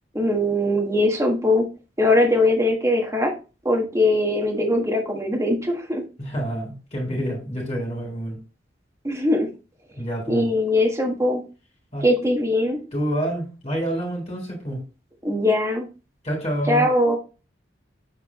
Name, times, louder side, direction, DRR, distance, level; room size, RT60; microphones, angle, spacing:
voice 1, 0.1-1.7 2.0-3.3 3.6-6.0 9.0-9.5 10.3-11.4 12.0-12.8 15.2-15.9 16.7-17.2, left 1 dB, 15° right, 0 dB, 1.5 m, -21 dB
voice 2, 6.2-8.4 10.0-10.5 11.9-12.1 12.9-14.8 16.2-16.9, right 1 dB, 35° left, -1 dB, 3.6 m, -28 dB
7.3 x 4.7 x 3.1 m, 0.32 s
head